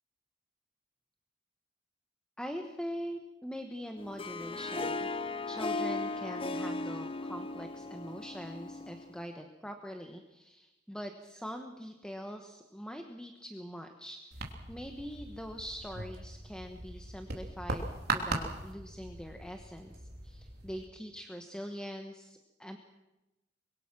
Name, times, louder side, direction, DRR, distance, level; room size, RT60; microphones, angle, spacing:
voice 1, 2.4-5.1 5.5-22.8, equal, 5° left, 5 dB, 1.2 m, -43 dB
Harp, 4.0-9.2, left 3 dB, 30° left, 0.9 m, -37 dB
sound 1, 14.3-20.9, right 3 dB, 60° right, 3.1 m, -39 dB
24.5 x 23.0 x 6.1 m, 1.0 s
head